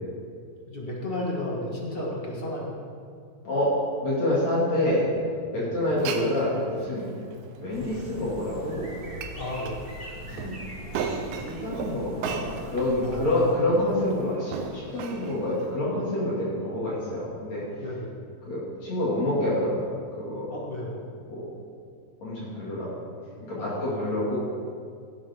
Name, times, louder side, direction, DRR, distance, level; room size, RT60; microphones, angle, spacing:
voice 1, 0.7-2.8 5.5-5.8 9.3-9.9 13.0-13.7 17.8-18.2 20.5-21.0 23.6-24.2, left 1 dB, 30° left, -4 dB, 1.1 m, -33 dB
voice 2, 4.0-5.1 5.5-7.1 7.6-8.9 10.3-10.6 11.0-17.6 18.5-19.8 20.2-20.5 21.3-21.5 22.2-22.9 23.4-24.4, left 1 dB, 50° left, -7 dB, 3.4 m, -27 dB
Glass, 5.8-15.8, right 6 dB, 75° right, 2.5 m, -38 dB
sound 1, 7.7-13.5, equal, 50° right, 0.6 m, -42 dB
16.5 x 11.0 x 3.6 m, 2.3 s
omnidirectional pair, 4.2 m